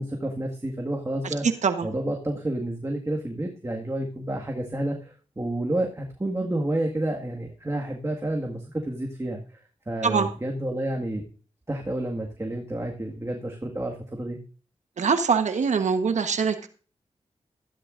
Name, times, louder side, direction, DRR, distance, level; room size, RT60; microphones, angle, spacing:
voice 1, 0.0-1.5 1.8-9.4 9.9-11.2 11.7-14.4, right 1 dB, 25° right, 1 dB, 1.9 m, -30 dB
voice 2, 15.0-16.7, right 5 dB, 80° right, 7 dB, 1.2 m, -23 dB
13.5 x 11.5 x 2.6 m, 0.38 s
cardioid pair, 50°, 12 cm